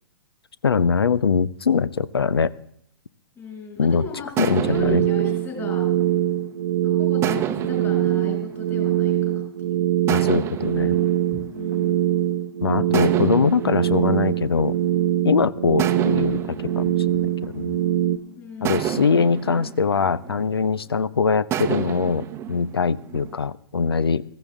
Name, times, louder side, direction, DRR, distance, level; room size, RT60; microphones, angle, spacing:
voice 1, 0.6-2.5 3.8-4.0 4.4-5.0 10.1-11.0 12.6-14.7 15.2-17.8 18.6-24.2, left 5 dB, 75° left, 19 dB, 0.7 m, -22 dB
voice 2, 3.3-5.9 6.8-9.9 11.3-12.0 18.3-19.0, left 5 dB, 20° left, -1 dB, 6.3 m, -37 dB
sound 1, 4.4-6.6 7.2-9.5 10.1-12.3 12.9-15.2 15.8-18.0 18.6-20.9 21.5-23.4, right 10 dB, 20° right, 0.8 m, -31 dB
sound 2, 4.5-18.2, right 12 dB, 55° right, 1.0 m, -23 dB
16.0 x 15.0 x 3.6 m, 0.68 s
figure-of-eight pair, 120°, 13 cm